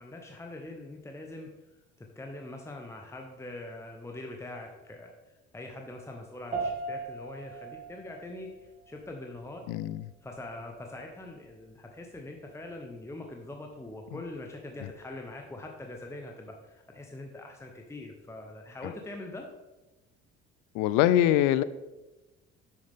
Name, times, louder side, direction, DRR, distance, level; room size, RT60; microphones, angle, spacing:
voice 1, 0.0-1.5 2.0-5.1 5.5-9.7 10.2-19.5, left 2 dB, 10° left, 2 dB, 0.9 m, -43 dB
sound 1, 6.5-16.1, right 3 dB, 20° right, 2.1 m, -42 dB
voice 2, 9.7-10.1 14.1-14.2 14.8-14.9 20.7-21.6, left 12 dB, 70° left, 16 dB, 0.5 m, -24 dB
6.5 x 6.3 x 3.6 m, 1.1 s
hypercardioid pair, 65°, 33 cm